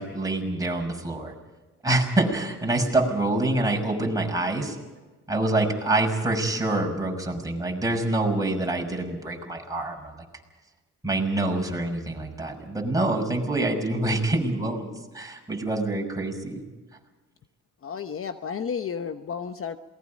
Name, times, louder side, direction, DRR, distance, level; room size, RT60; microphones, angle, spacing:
voice 1, 0.0-1.3 1.8-4.8 5.3-10.1 11.0-16.6, right 2 dB, 10° right, 1 dB, 6.1 m, -26 dB
voice 2, 17.8-19.8, left 6 dB, 45° left, 9 dB, 1.1 m, -32 dB
27.5 x 20.5 x 5.3 m, 1.2 s
cardioid pair, 90°, 30 cm